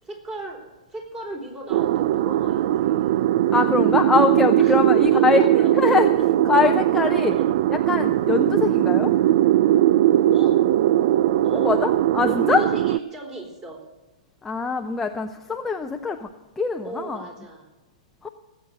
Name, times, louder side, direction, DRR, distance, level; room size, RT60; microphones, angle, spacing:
voice 1, 0.0-3.4 4.6-6.2 7.1-7.5 10.3-10.6 11.4-11.8 12.2-13.8 16.8-17.7, right 2 dB, 20° right, 2 dB, 4.1 m, -36 dB
sound 1, 1.7-13.0, right 13 dB, 55° right, 0.3 m, -19 dB
voice 2, 3.5-5.5 5.7-6.1 6.4-7.3 7.9-9.1 11.5-12.6 14.4-16.3 16.6-17.2 18.2-18.3, left 4 dB, 10° left, 5 dB, 0.7 m, -23 dB
18.5 x 8.3 x 6.6 m, 1.1 s
hypercardioid pair, 130°, 4 cm